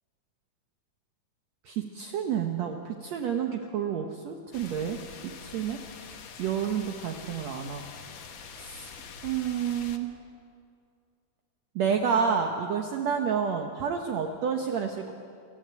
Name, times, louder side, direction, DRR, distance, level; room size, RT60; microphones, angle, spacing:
voice 1, 1.7-5.0 5.2-5.8 6.4-7.8 8.6-8.9 9.2-10.1 11.8-15.1, right 7 dB, 65° right, 3 dB, 2.1 m, -29 dB
sound 1, 4.5-10.0, left 6 dB, 55° left, 1.4 m, -45 dB
27.0 x 14.5 x 9.1 m, 2.4 s
omnidirectional pair, 3.8 m